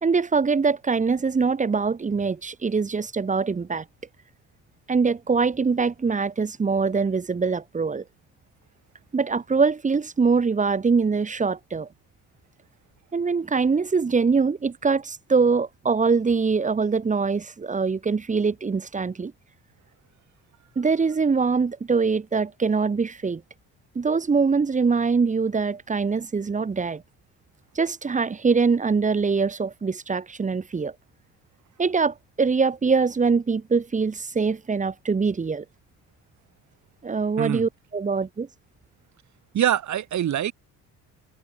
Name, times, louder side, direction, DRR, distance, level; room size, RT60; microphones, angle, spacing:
voice 1, 0.0-3.8 4.9-8.0 9.1-11.9 13.1-19.3 20.8-23.4 23.9-27.0 27.7-30.9 31.8-35.6 37.0-38.5, right 5 dB, 20° right, 1.2 m, -23 dB
voice 2, 39.5-40.5, right 10 dB, 50° right, 2.4 m, -24 dB
cardioid pair, 115°, 37 cm